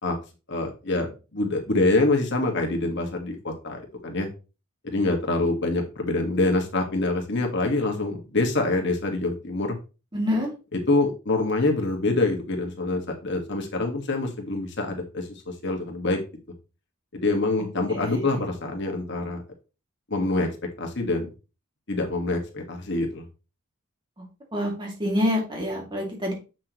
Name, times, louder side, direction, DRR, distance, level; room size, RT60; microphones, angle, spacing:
voice 1, 0.5-4.3 4.8-9.8 10.7-15.3 15.6-16.2 17.1-19.4 20.1-20.5 20.8-21.3 21.9-23.2, left 2 dB, 55° left, 3 dB, 1.7 m, -25 dB
voice 2, 10.1-10.5 17.9-18.4 24.5-26.3, left 1 dB, 20° right, 0 dB, 2.4 m, -27 dB
7.7 x 6.1 x 3.0 m, 0.31 s
head